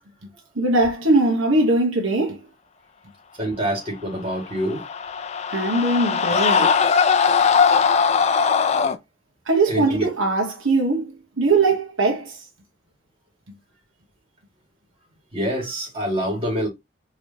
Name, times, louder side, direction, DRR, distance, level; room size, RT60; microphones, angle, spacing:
voice 1, 0.6-2.4 5.5-6.8 9.5-12.4, right 2 dB, 80° right, 1.1 m, -20 dB
voice 2, 3.4-4.8 9.7-10.1 15.3-16.7, right 1 dB, 30° right, 2.1 m, -25 dB
sound 1, 4.5-9.0, left 6 dB, 35° left, 0.3 m, -19 dB
4.7 x 3.1 x 2.8 m
head